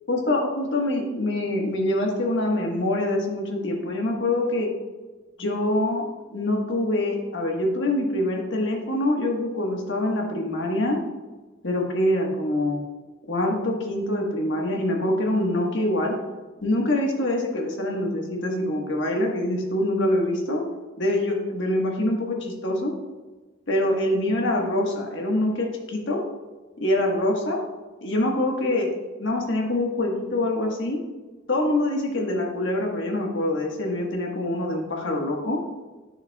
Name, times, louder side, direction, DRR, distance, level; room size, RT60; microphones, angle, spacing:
voice 1, 0.1-4.7 5.4-6.0 6.3-11.0 11.6-12.8 13.3-16.1 16.6-20.6 21.0-22.9 23.7-26.2 26.8-27.6 28.0-28.9 29.2-31.0 31.5-35.6, left 1 dB, 65° left, 0 dB, 1.4 m, -25 dB
9.7 x 6.7 x 2.3 m, 1.2 s
head